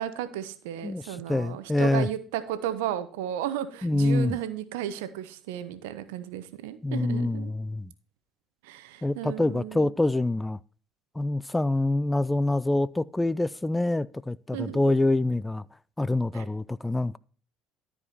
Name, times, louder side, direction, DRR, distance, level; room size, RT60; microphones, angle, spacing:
voice 1, 0.0-7.5 8.6-9.9 14.5-15.1 16.3-16.5, right 11 dB, 80° right, 0.9 m, -34 dB
voice 2, 1.3-2.1 3.8-4.4 6.8-7.9 9.0-10.6 11.2-15.6 16.0-17.2, left 2 dB, 10° left, 0.4 m, -26 dB
13.0 x 5.0 x 4.1 m
hypercardioid pair, 65°, 0 cm